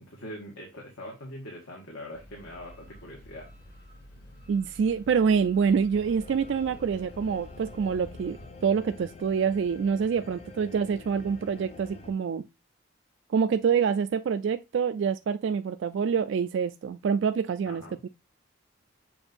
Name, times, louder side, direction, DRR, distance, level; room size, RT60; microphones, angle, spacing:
voice 1, 0.1-3.5 17.7-18.0, left 1 dB, 80° left, 1.8 m, -42 dB
sound 1, 2.1-8.5, equal, 60° left, 4.3 m, -49 dB
voice 2, 4.5-12.4 13.3-18.1, right 6 dB, 65° right, 0.3 m, -26 dB
sound 2, 5.9-12.1, left 3 dB, 30° left, 0.6 m, -47 dB
7.0 x 2.6 x 5.2 m
head